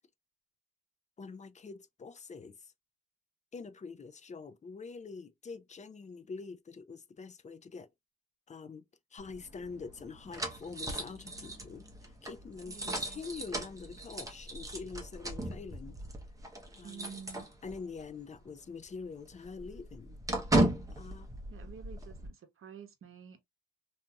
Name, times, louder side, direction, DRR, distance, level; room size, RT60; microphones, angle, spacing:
voice 1, 1.2-2.7 3.5-7.9 8.5-8.8 9.1-11.8 12.2-16.0 16.8-17.2 17.6-20.2 20.9-21.3, left 4 dB, 25° left, 0.4 m, -45 dB
sound 1, 9.2-18.0 18.3-18.5 18.8-22.3, right 1 dB, 10° right, 0.8 m, -36 dB
voice 2, 12.6-13.2 16.8-17.5 21.5-23.4, right 7 dB, 45° right, 0.9 m, -49 dB
2.8 x 2.6 x 2.2 m
cardioid pair, 90°, 30 cm